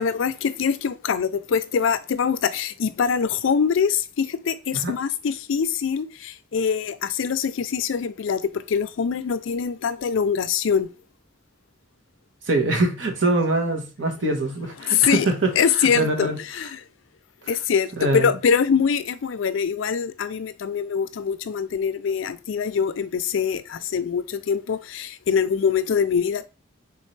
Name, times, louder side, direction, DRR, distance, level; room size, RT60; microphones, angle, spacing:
voice 1, 0.0-10.9 14.8-15.3 15.6-16.8 17.5-26.5, left 6 dB, 80° left, 0.4 m, -24 dB
voice 2, 12.5-15.5 15.9-16.4 18.0-18.3, right 2 dB, 70° right, 1.1 m, -23 dB
4.2 x 3.6 x 3.2 m
head